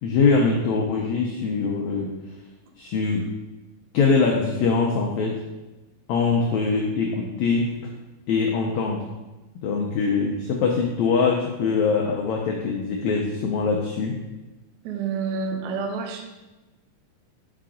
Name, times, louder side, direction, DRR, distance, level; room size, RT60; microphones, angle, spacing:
voice 1, 0.0-2.1 2.8-3.3 3.9-5.4 6.1-7.9 8.3-9.1 9.6-14.2, left 4 dB, 85° left, 0 dB, 1.6 m, -23 dB
voice 2, 14.8-16.2, right 5 dB, 80° right, 3 dB, 1.9 m, -28 dB
5.7 x 5.0 x 3.7 m, 1.1 s
omnidirectional pair, 4.0 m